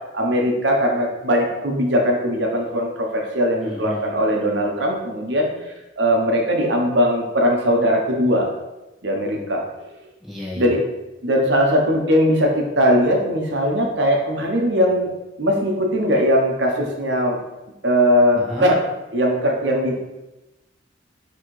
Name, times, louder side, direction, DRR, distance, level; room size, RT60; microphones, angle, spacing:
voice 1, 0.1-5.5 6.0-8.5 9.0-9.6 10.5-10.8 11.2-15.1 15.4-17.4 17.8-18.7 19.1-20.0, equal, 70° right, 0 dB, 1.0 m, -19 dB
voice 2, 3.6-4.1 10.2-10.7 18.3-18.7, left 1 dB, ahead, -6 dB, 1.4 m, -31 dB
6.2 x 3.2 x 4.7 m, 1.0 s
head